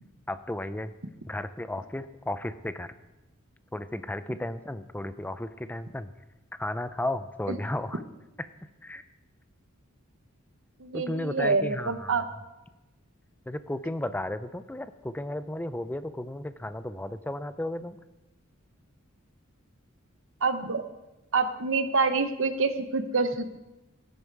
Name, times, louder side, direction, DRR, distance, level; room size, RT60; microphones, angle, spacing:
voice 1, 0.3-0.9 1.3-2.9 3.7-6.1 6.6-8.0 8.4-8.5 8.8-9.0 10.9-12.2 13.5-18.0, left 1 dB, 10° left, 12 dB, 0.5 m, -34 dB
voice 2, 10.8-12.2 20.4-20.8 21.3-23.6, right 4 dB, 65° right, 10 dB, 1.0 m, -26 dB
16.5 x 9.4 x 4.7 m, 1.0 s
head